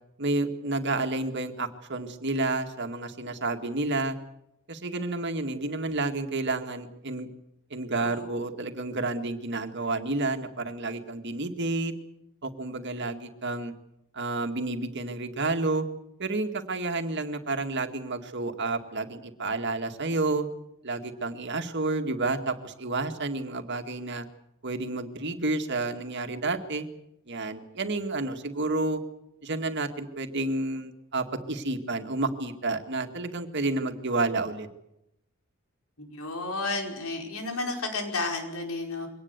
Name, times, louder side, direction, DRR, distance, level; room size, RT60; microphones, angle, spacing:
voice 1, 0.2-4.2 4.7-7.3 7.7-11.9 12.4-13.7 14.1-15.8 16.2-20.5 20.8-24.3 24.6-26.9 27.3-29.0 29.4-34.7, right 2 dB, 55° right, 6 dB, 2.1 m, -30 dB
voice 2, 8.0-8.3 36.0-39.1, left 3 dB, 85° left, 3 dB, 5.2 m, -32 dB
23.5 x 18.5 x 8.2 m, 0.84 s
head